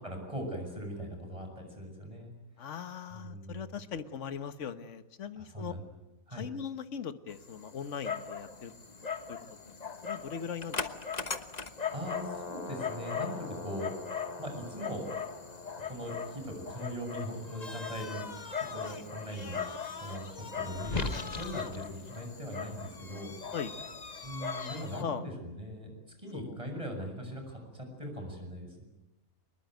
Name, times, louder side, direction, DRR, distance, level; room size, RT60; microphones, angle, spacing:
voice 1, 0.0-2.3 3.1-3.8 5.4-5.8 6.3-6.5 11.9-13.9 14.4-15.2 15.8-18.3 18.6-19.6 20.0-23.3 24.2-25.9 26.2-28.8, equal, 20° right, 3 dB, 7.3 m, -40 dB
voice 2, 2.6-5.7 6.3-8.7 9.3-9.4 9.7-9.8 10.0-10.9 23.5-23.7 25.0-25.3 26.3-26.6, left 7 dB, 55° left, 10 dB, 1.5 m, -39 dB
Dog, 7.3-25.0, left 5 dB, 30° left, 1.1 m, -39 dB
25.0 x 21.5 x 9.4 m, 1.0 s
omnidirectional pair, 1.5 m